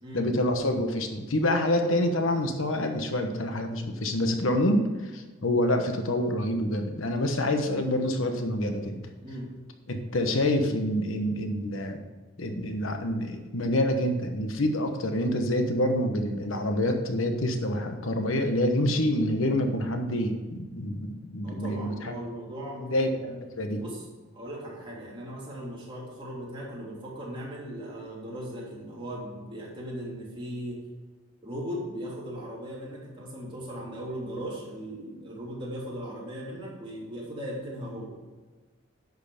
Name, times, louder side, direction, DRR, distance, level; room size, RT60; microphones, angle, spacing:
voice 1, 0.1-9.1 9.9-12.0 12.4-21.9 22.9-23.1 23.6-23.8, left 1 dB, 85° left, 5 dB, 1.2 m, -27 dB
voice 2, 9.2-9.5 21.4-23.4 23.7-24.0 24.3-30.8 31.4-38.1, equal, 25° right, -5 dB, 3.3 m, -38 dB
11.0 x 6.6 x 5.0 m, 1.4 s
head